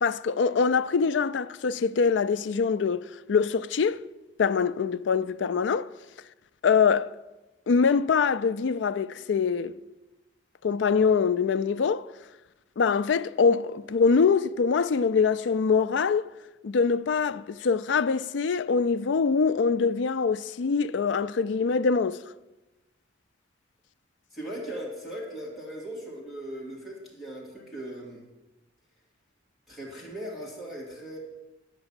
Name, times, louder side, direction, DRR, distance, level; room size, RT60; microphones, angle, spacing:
voice 1, 0.0-4.0 4.4-5.9 6.6-7.1 7.7-9.8 10.6-12.1 12.8-16.3 16.6-22.2, left 5 dB, 75° left, 0.4 m, -24 dB
voice 2, 24.3-28.3 29.7-31.2, right 1 dB, ahead, 2.4 m, -38 dB
10.5 x 6.0 x 8.9 m
head